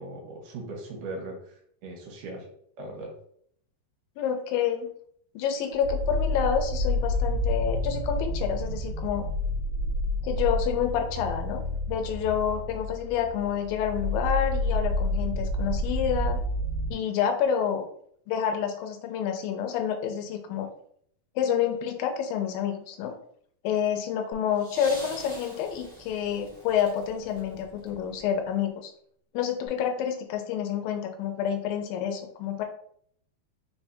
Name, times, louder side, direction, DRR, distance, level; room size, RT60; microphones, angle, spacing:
voice 1, 0.0-2.5 2.8-3.1, right 2 dB, 75° right, 0 dB, 2.6 m, -39 dB
voice 2, 4.2-4.9 5.4-9.3 10.2-16.4 16.9-17.9 18.3-20.7 21.4-23.2 23.6-28.9 29.3-32.6, left 8 dB, 90° left, 4 dB, 2.4 m, -28 dB
sound 1, 5.8-16.9, left 1 dB, 55° right, 1.5 m, -29 dB
sound 2, 24.3-28.5 29.7-29.8, equal, 25° right, 0.5 m, -46 dB
5.4 x 3.4 x 2.7 m, 0.65 s
omnidirectional pair, 3.9 m